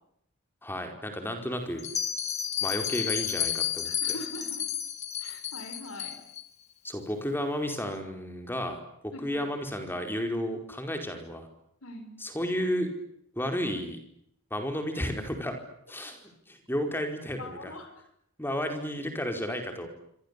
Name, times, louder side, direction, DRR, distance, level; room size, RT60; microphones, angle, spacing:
voice 1, 0.6-1.9 2.6-4.2 6.8-11.5 12.2-12.9 13.3-14.0 14.5-15.6 15.9-17.7 18.4-19.9, equal, 10° left, 5 dB, 4.8 m, -32 dB
Bell, 1.8-6.4, left 9 dB, 35° left, 2.5 m, -31 dB
voice 2, 3.8-4.6 5.2-6.2 9.1-9.4 11.8-12.1 17.4-17.9, left 1 dB, 80° left, 7 dB, 5.1 m, -42 dB
27.0 x 26.0 x 8.5 m, 0.74 s
head